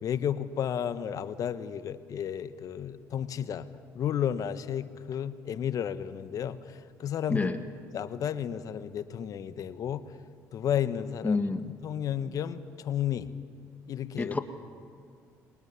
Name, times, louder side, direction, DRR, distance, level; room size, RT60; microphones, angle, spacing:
voice 1, 0.0-3.7 3.9-6.6 7.0-7.5 7.9-10.0 10.5-11.4 11.8-13.3 13.9-14.3, left 9 dB, 60° left, 12 dB, 1.3 m, -32 dB
voice 2, 7.3-7.6 11.2-11.7 14.2-14.4, left 3 dB, 25° left, 8 dB, 1.7 m, -28 dB
22.5 x 20.0 x 9.7 m, 2.4 s
supercardioid pair, 75°, 7 cm